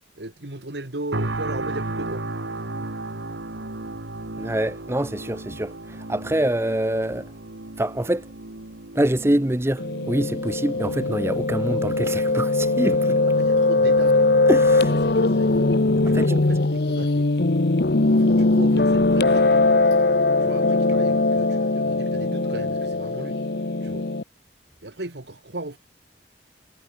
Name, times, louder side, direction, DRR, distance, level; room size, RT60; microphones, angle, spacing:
voice 1, 0.2-2.4 2.7-2.9 13.4-14.2 14.9-15.7 16.0-17.3 18.1-19.6 20.4-23.4 23.8-24.0 24.8-25.8, right 2 dB, 70° right, 2.0 m, -36 dB
sound 1, 1.1-16.1 16.6-16.8, right 2 dB, 85° right, 2.1 m, -36 dB
voice 2, 4.4-7.3 7.8-8.3 8.9-13.2 14.5-14.9 16.1-16.3, right 1 dB, 15° right, 0.7 m, -25 dB
Piano, 9.8-24.2, left 2 dB, 60° left, 1.0 m, -20 dB
head